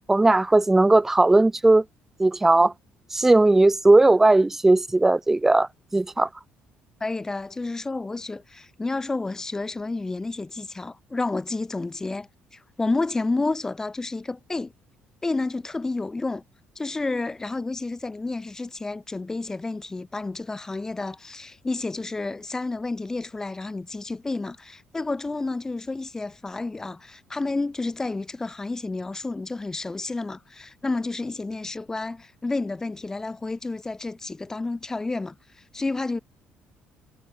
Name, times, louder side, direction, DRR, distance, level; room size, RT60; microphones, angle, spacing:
voice 1, 0.1-1.8 2.2-2.7 3.1-5.7 5.9-6.3, right 2 dB, 10° right, 0.3 m, -17 dB
voice 2, 7.0-12.3 12.5-14.7 15.2-16.4 16.8-35.4 35.7-36.2, left 3 dB, 15° left, 0.8 m, -30 dB
cardioid pair, 140°, 4 cm